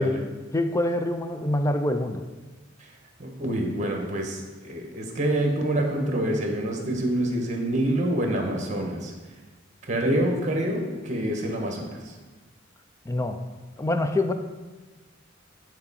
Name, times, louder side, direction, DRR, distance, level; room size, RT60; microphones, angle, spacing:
voice 1, 0.0-2.2 13.1-13.4 13.8-14.3, left 1 dB, 15° left, 8 dB, 0.4 m, -25 dB
voice 2, 3.2-9.1 9.8-12.1, right 1 dB, 40° right, 2 dB, 1.2 m, -26 dB
9.7 x 4.6 x 4.1 m, 1.3 s
head